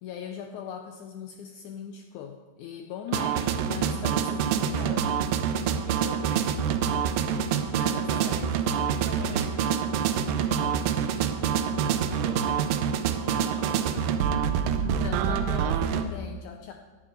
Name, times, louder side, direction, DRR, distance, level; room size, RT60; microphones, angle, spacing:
voice 1, 0.0-3.4 3.6-5.1 7.7-8.5 14.7-16.7, left 8 dB, 75° left, 4 dB, 1.9 m, -40 dB
voice 2, 3.1-3.6 5.8-11.0 11.8-14.1, right 1 dB, 40° right, -2 dB, 3.4 m, -46 dB
sound 1, 3.1-16.1, right 8 dB, 80° right, 2.4 m, -26 dB
17.5 x 10.5 x 4.4 m, 1.4 s
omnidirectional pair, 4.0 m